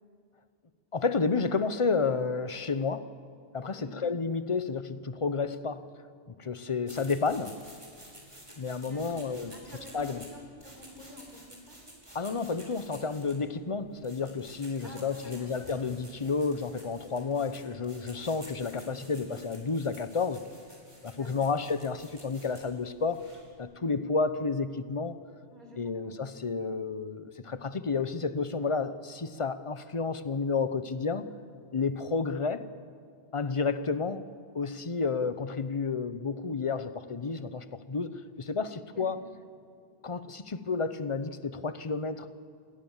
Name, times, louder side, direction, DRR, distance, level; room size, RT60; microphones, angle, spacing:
voice 1, 0.9-3.1 3.5-5.9 6.3-7.5 8.6-9.5 9.9-10.2 12.1-20.4 21.0-23.2 23.6-25.2 25.8-31.3 31.7-32.6 33.3-34.3 34.5-39.2 40.0-42.4, left 4 dB, 30° left, 12 dB, 0.9 m, -31 dB
voice 2, 3.7-4.0 8.8-11.8 14.8-15.8 21.1-21.5 25.5-26.1 38.8-39.3, left 1 dB, 45° right, 1 dB, 5.1 m, -49 dB
sound 1, 6.8-23.5, equal, 25° right, 5.3 m, -52 dB
28.0 x 21.5 x 7.3 m, 2.2 s
omnidirectional pair, 1.2 m